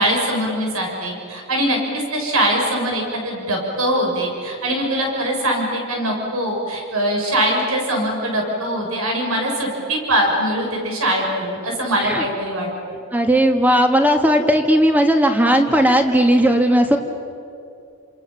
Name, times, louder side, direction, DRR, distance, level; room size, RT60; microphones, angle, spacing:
voice 1, 0.0-12.7, right 1 dB, 75° right, 0 dB, 6.7 m, -22 dB
voice 2, 13.1-17.0, equal, 10° right, 5 dB, 2.0 m, -16 dB
30.0 x 27.0 x 7.2 m, 2.6 s
head